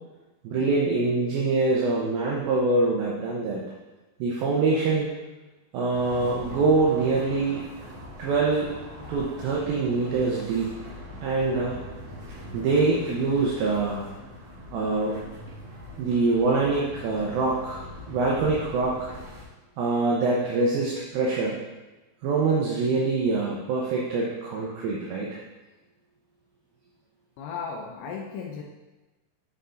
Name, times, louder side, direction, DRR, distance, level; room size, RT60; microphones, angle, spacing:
voice 1, 0.4-3.6 4.2-5.1 5.7-7.6 8.2-8.7 9.1-10.7 11.2-11.8 12.5-14.0 14.7-15.2 16.0-19.1 19.8-21.6 22.2-25.3, right 3 dB, 75° right, -3 dB, 2.4 m, -24 dB
sound 1, 5.9-19.5, equal, 50° right, 3.7 m, -42 dB
voice 2, 27.4-28.6, left 5 dB, 80° left, 1 dB, 2.4 m, -35 dB
7.9 x 5.4 x 3.9 m, 1.1 s
omnidirectional pair, 4.8 m